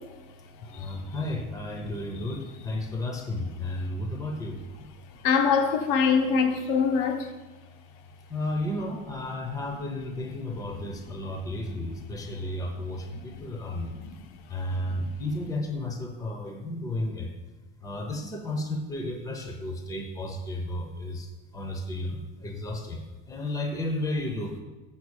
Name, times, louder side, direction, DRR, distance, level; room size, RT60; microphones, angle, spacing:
voice 1, 0.6-4.6 8.3-14.0 14.5-17.3 17.8-21.3 21.5-24.6, left 1 dB, 10° left, 0.8 m, -33 dB
voice 2, 5.2-7.3, left 6 dB, 70° left, 1.0 m, -23 dB
7.2 x 5.8 x 6.4 m
cardioid pair, 155°, 33 cm